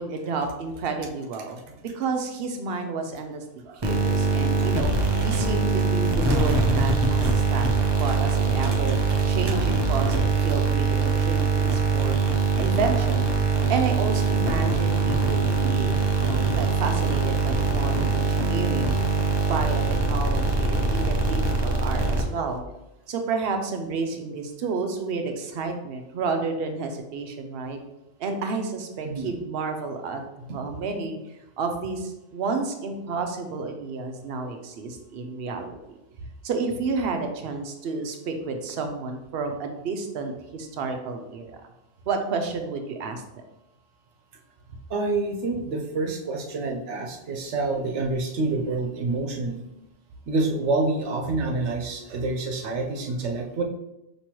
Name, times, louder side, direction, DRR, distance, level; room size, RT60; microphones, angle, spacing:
voice 1, 0.0-4.9 5.2-12.2 12.6-13.3 13.7-15.9 16.2-18.9 19.5-22.6 23.1-27.8 28.2-31.2 31.6-35.8 36.4-41.6 42.1-43.4, right 4 dB, 65° right, 5 dB, 0.8 m, -31 dB
sound 1, 3.8-22.6, right 4 dB, 40° right, 0.4 m, -23 dB
voice 2, 44.9-49.6 50.3-53.6, right 3 dB, 90° right, 2 dB, 1.0 m, -27 dB
6.0 x 3.0 x 2.9 m, 0.91 s
omnidirectional pair, 1.2 m